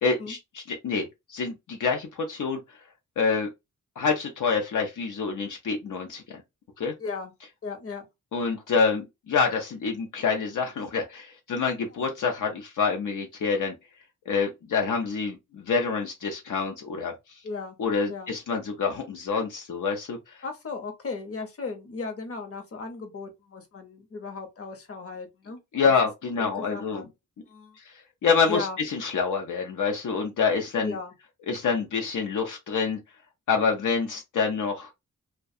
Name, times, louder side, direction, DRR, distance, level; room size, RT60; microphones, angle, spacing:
voice 1, 0.0-2.6 3.2-3.5 4.0-6.4 6.8-6.9 8.3-13.7 14.3-17.1 17.8-20.4 25.7-27.0 28.2-30.9 31.5-33.0 33.5-34.9, left 5 dB, 75° left, 0.6 m, -27 dB
voice 2, 7.0-7.3 7.6-8.1 11.9-12.1 17.4-17.8 18.1-18.3 20.4-25.6 26.4-27.1 27.5-27.8 28.5-28.8 30.8-31.1, left 4 dB, 45° left, 0.8 m, -36 dB
2.3 x 2.2 x 2.6 m
wide cardioid pair, 85°, 31 cm